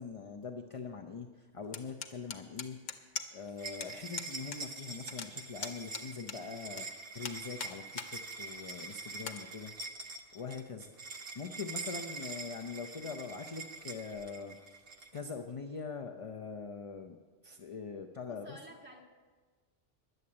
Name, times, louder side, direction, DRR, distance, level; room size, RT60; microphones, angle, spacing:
voice 1, 0.0-2.8 3.3-9.7 10.3-10.9 11.3-14.8 15.1-17.2 17.4-18.6, left 5 dB, 35° left, 3 dB, 0.5 m, -43 dB
sound 1, 1.7-3.5 3.8-3.9 4.2-4.6 4.9-6.8 7.2-8.1 8.5-8.6 9.2-9.4, left 5 dB, 85° left, 1.2 m, -41 dB
sound 2, 3.6-15.2, right 4 dB, 55° right, 1.1 m, -45 dB
voice 2, 18.3-19.0, right 1 dB, 10° right, -4 dB, 1.8 m, -51 dB
11.0 x 8.0 x 8.6 m, 1.4 s
omnidirectional pair, 1.2 m